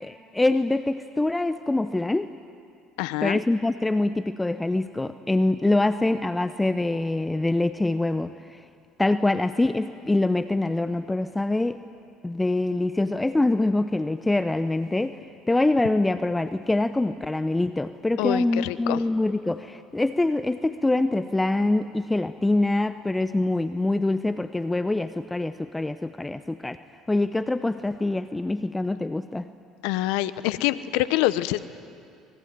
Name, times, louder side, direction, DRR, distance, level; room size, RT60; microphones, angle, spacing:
voice 1, 0.0-2.3 3.2-8.6 9.0-11.8 12.2-15.2 15.5-26.8 27.1-29.5, left 2 dB, 15° left, 12 dB, 0.8 m, -24 dB
voice 2, 3.0-3.4 18.2-19.0 29.8-31.6, left 16 dB, 75° left, 15 dB, 0.8 m, -25 dB
25.0 x 21.0 x 9.4 m, 2.4 s
hypercardioid pair, 60°, 0 cm